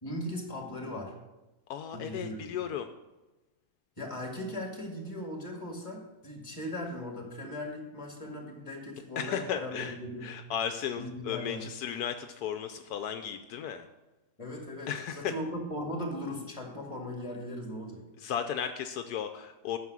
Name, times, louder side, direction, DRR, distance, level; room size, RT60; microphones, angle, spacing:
voice 1, 0.0-1.1 1.9-2.7 4.0-10.3 11.0-11.6 14.4-18.0, left 1 dB, 20° left, 1 dB, 2.1 m, -38 dB
voice 2, 1.7-2.9 9.2-13.9 14.9-15.3 18.2-19.8, left 8 dB, 80° left, 8 dB, 1.1 m, -35 dB
9.4 x 6.5 x 6.1 m, 1.1 s
omnidirectional pair, 1.7 m